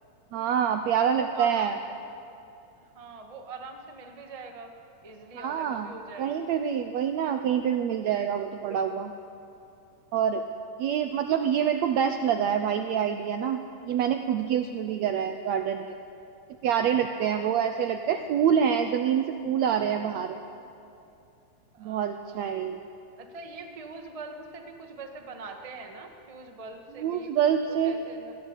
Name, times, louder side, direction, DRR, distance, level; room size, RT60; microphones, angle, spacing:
voice 1, 0.3-1.7 5.3-9.1 10.1-10.4 10.8-16.0 16.6-20.4 21.8-22.8 27.0-28.0, right 8 dB, 80° right, 7 dB, 1.6 m, -26 dB
voice 2, 1.0-1.8 2.8-4.7 5.0-6.7 16.9-17.5 17.8-18.3 21.7-22.6 23.2-27.3 27.7-28.3, right 3 dB, 50° right, 3 dB, 0.4 m, -43 dB
21.5 x 16.5 x 8.2 m, 2.6 s
omnidirectional pair, 4.0 m